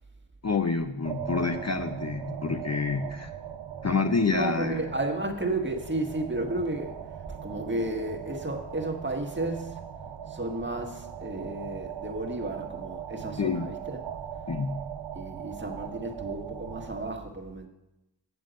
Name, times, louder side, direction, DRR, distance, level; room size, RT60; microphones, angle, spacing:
voice 1, 0.4-3.3 3.8-4.8 13.4-13.7 14.5-14.9, left 4 dB, 35° left, 7 dB, 0.7 m, -28 dB
sound 1, 1.1-17.1, right 9 dB, 75° right, 0.8 m, -40 dB
voice 2, 4.2-9.9 10.3-14.0 15.1-17.7, right 2 dB, 25° right, 4 dB, 1.6 m, -33 dB
8.0 x 7.4 x 5.1 m, 0.94 s
cardioid pair, 45°, 44 cm